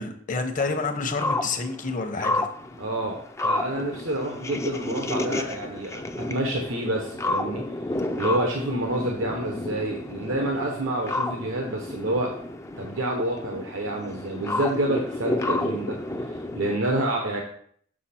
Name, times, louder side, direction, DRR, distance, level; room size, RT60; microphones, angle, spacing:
voice 1, 0.0-2.5, left 3 dB, 40° left, 6 dB, 0.9 m, -28 dB
sound 1, 0.6-16.8, left 2 dB, 15° left, 0.4 m, -31 dB
voice 2, 2.8-7.6 8.2-12.3 12.8-17.4, right 1 dB, 80° right, 1 dB, 1.0 m, -28 dB
7.4 x 5.1 x 4.3 m, 0.62 s
head